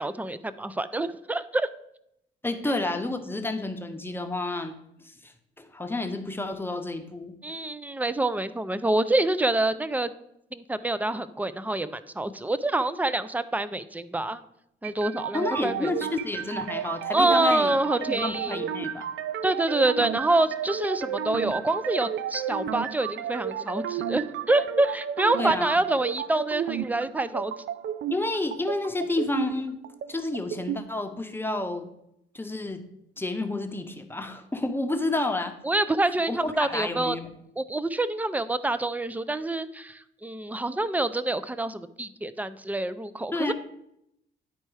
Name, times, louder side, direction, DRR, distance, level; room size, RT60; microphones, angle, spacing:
voice 1, 0.0-1.7 7.4-10.1 10.5-14.4 14.8-15.9 17.1-18.6 19.4-27.5 35.6-37.2 37.6-43.5, right 2 dB, 10° right, 14 dB, 0.5 m, -26 dB
voice 2, 2.4-4.7 5.2-5.3 5.6-7.3 15.3-17.7 18.0-19.1 25.4-25.8 28.1-29.8 30.1-31.9 32.3-32.8 33.2-35.5 36.3-37.3 43.3-43.5, left 2 dB, 10° left, 6 dB, 0.9 m, -30 dB
sound 1, 14.8-30.8, right 9 dB, 75° right, 0.5 m, -33 dB
9.9 x 4.4 x 4.8 m, 0.78 s
cardioid pair, 90°, 20 cm